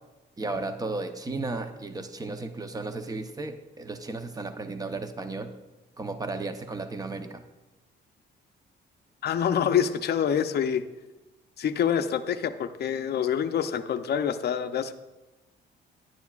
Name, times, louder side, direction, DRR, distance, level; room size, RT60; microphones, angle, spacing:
voice 1, 0.4-5.5 6.0-7.4, right 3 dB, 20° right, 7 dB, 0.8 m, -34 dB
voice 2, 9.2-10.8 11.6-14.9, left 8 dB, 55° left, 8 dB, 0.6 m, -26 dB
11.5 x 10.0 x 2.4 m, 1.1 s
cardioid pair, 90°, 20 cm